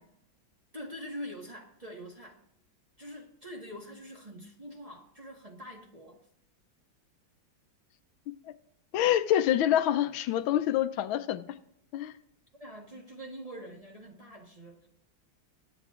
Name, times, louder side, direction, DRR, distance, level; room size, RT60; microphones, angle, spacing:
voice 1, 0.7-2.4 3.0-6.2 12.6-14.9, equal, 20° right, -2 dB, 1.2 m, -44 dB
voice 2, 8.9-11.4 11.9-12.1, left 11 dB, 85° left, 12 dB, 1.4 m, -26 dB
21.0 x 10.0 x 2.4 m, 0.74 s
omnidirectional pair, 2.2 m